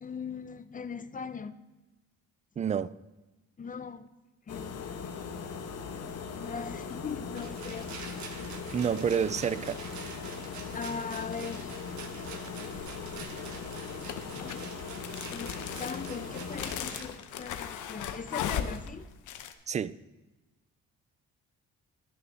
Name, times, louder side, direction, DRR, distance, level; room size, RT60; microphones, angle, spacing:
voice 1, 0.0-1.5 3.6-4.1 4.5-5.1 6.3-7.9 10.3-11.8 14.4-14.8 15.3-19.1, left 6 dB, 25° left, 0.6 m, -40 dB
voice 2, 2.6-2.9 8.7-9.8 19.7-20.0, right 7 dB, 25° right, 0.3 m, -28 dB
sound 1, 4.5-16.8, left 5 dB, 55° left, 1.1 m, -40 dB
Rattle, 7.3-17.0, right 5 dB, 70° right, 1.4 m, -46 dB
sound 2, 12.7-13.2 14.0-19.5, left 9 dB, 75° left, 0.8 m, -37 dB
11.5 x 6.8 x 5.6 m
cardioid pair, 90°, 30 cm